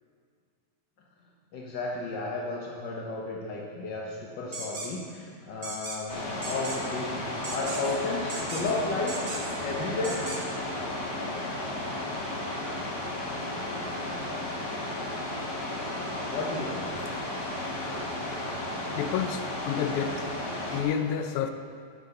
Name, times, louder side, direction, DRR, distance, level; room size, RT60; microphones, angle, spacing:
voice 1, 1.5-9.3 9.6-10.2 16.3-16.9, left 3 dB, 65° left, -2 dB, 1.0 m, -33 dB
sound 1, 4.5-4.9 5.6-6.0 6.4-6.8 7.4-8.0 8.3-8.7 9.1-9.6 10.0-10.4, right 2 dB, 50° right, 0.6 m, -37 dB
sound 2, 6.1-20.8, left 1 dB, 40° left, 2.0 m, -34 dB
voice 2, 19.0-20.3 20.7-21.5, left 8 dB, 80° left, 8 dB, 2.0 m, -29 dB
11.5 x 7.8 x 6.5 m, 2.2 s
omnidirectional pair, 3.5 m